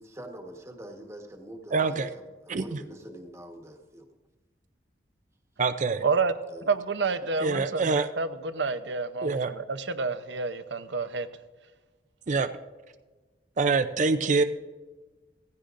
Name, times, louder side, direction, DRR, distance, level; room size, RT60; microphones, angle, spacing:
voice 1, 0.0-4.0 6.5-6.7, right 1 dB, 15° right, 3 dB, 1.3 m, -44 dB
voice 2, 1.7-2.1 2.5-2.8 5.6-6.0 7.4-8.1 9.2-9.5 12.3-12.5 13.6-14.4, right 4 dB, 45° right, 10 dB, 0.5 m, -25 dB
voice 3, 6.0-6.3 6.7-7.9 8.2-11.3, right 4 dB, 85° right, 10 dB, 0.8 m, -29 dB
16.5 x 15.0 x 2.6 m, 1.3 s
head